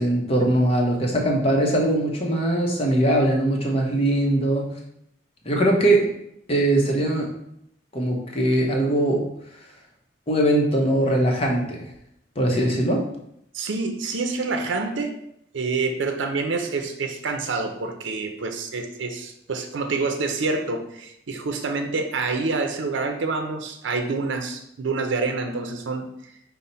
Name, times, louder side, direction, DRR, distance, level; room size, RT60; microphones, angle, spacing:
voice 1, 0.0-4.7 5.4-6.1 6.5-7.3 7.9-9.3 10.3-11.8 12.4-13.0, right 1 dB, 30° left, 0 dB, 0.7 m, -21 dB
voice 2, 13.5-15.2 15.5-26.1, right 3 dB, 85° right, 6 dB, 0.5 m, -27 dB
5.3 x 2.1 x 4.2 m, 0.76 s
head